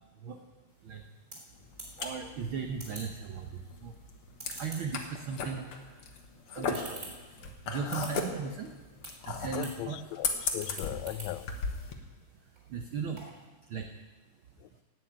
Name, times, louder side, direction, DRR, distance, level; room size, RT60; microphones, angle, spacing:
sound 1, 0.7-13.5, right 2 dB, 25° right, 4.1 m, -51 dB
sound 2, 1.5-11.9, left 5 dB, 55° left, 1.9 m, -37 dB
voice 1, 2.0-4.0 4.6-6.2 6.5-8.7 9.2-10.0 12.7-13.2 13.7-13.9, right 6 dB, 75° right, 5 dB, 1.1 m, -37 dB
voice 2, 9.5-11.5 14.6-14.7, left 15 dB, 80° left, 15 dB, 1.7 m, -38 dB
17.5 x 6.3 x 8.7 m, 1.3 s
omnidirectional pair, 3.5 m